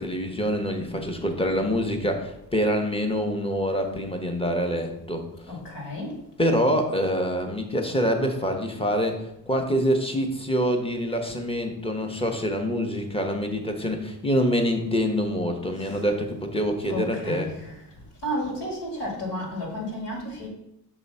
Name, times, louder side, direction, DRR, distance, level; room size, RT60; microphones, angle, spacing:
voice 1, 0.0-5.5 6.4-17.5, equal, 15° left, 4 dB, 1.0 m, -26 dB
voice 2, 5.5-6.1 16.9-17.5 18.2-20.5, left 1 dB, 75° left, -1 dB, 2.1 m, -31 dB
6.0 x 3.0 x 5.5 m, 0.82 s
cardioid pair, 85°, 40 cm